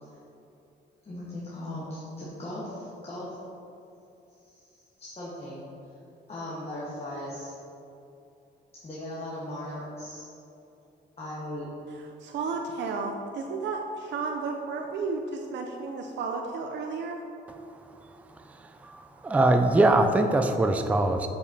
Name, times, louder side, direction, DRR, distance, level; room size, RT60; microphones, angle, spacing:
voice 1, 1.0-3.4 4.4-5.6 6.3-7.5 8.8-10.2 11.2-11.7, left 1 dB, 30° left, -8 dB, 1.3 m, -38 dB
voice 2, 12.2-17.2, right 4 dB, 65° right, 2 dB, 0.5 m, -32 dB
voice 3, 19.2-21.3, right 2 dB, 5° right, 6 dB, 0.3 m, -21 dB
6.7 x 5.3 x 2.7 m, 2.7 s
cardioid pair, 90°, 20 cm